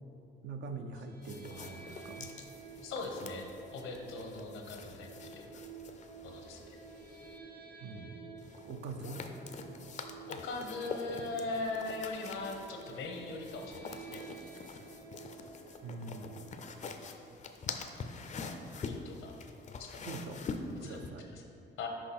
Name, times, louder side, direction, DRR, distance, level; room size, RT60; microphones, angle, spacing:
voice 1, 0.4-2.3 7.8-8.3 8.7-9.2 15.8-16.3 20.0-20.4 20.8-21.3, right 4 dB, 65° right, 6 dB, 0.6 m, -43 dB
sound 1, 1.0-17.1, right 5 dB, 50° right, 1.3 m, -51 dB
sound 2, 1.2-7.4 8.4-21.1, left 4 dB, 40° left, 0.5 m, -45 dB
voice 2, 2.8-5.6 6.2-6.8 10.3-14.2 18.7-19.3 19.8-20.0 20.8-21.4 21.8-21.9, left 3 dB, 80° left, 2 dB, 1.0 m, -40 dB
6.0 x 4.9 x 4.2 m, 2.8 s
cardioid pair, 90°, 20 cm